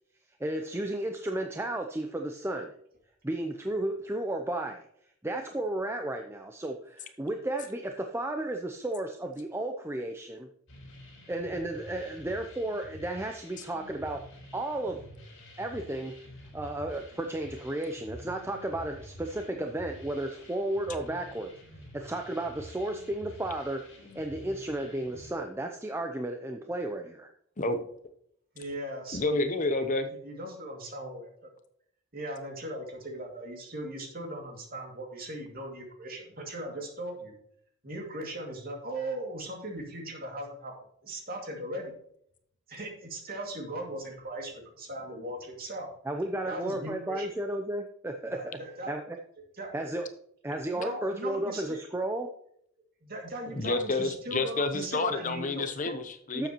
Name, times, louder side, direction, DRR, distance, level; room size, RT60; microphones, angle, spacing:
voice 1, 0.4-2.7 3.2-4.9 5.2-10.5 11.3-14.2 14.5-15.0 15.6-16.1 16.5-21.5 21.9-27.3 46.0-48.6 48.9-49.2 49.7-50.1 50.4-52.3 56.3-56.5, right 1 dB, 10° right, 4 dB, 0.5 m, -33 dB
sound 1, 10.7-25.3, equal, 75° left, 4.2 m, -49 dB
voice 2, 28.5-29.4 30.2-31.5 32.1-37.3 37.8-40.7 41.0-41.9 42.7-45.9 46.5-47.3 48.3-48.9 49.6-49.7 49.9-50.0 50.7-51.8 53.0-56.0, right 1 dB, 45° right, 1 dB, 2.3 m, -38 dB
voice 3, 29.1-30.1 53.5-56.5, left 3 dB, 35° left, 8 dB, 0.7 m, -29 dB
12.0 x 7.5 x 3.0 m, 0.68 s
head